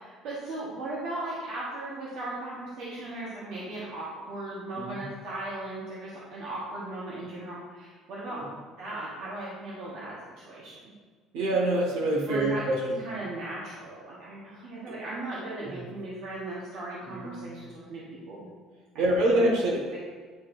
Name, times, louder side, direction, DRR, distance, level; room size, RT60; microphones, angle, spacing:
voice 1, 0.0-8.4 8.8-10.9 12.3-12.7 13.0-18.5 18.9-19.4 19.9-20.0, right 2 dB, 60° right, -7 dB, 1.4 m, -37 dB
voice 2, 11.3-13.0 15.6-15.8 17.1-17.4 19.0-20.0, right 1 dB, 75° right, -2 dB, 1.8 m, -26 dB
9.3 x 4.5 x 2.6 m, 1.5 s
cardioid pair, 175°, 0 cm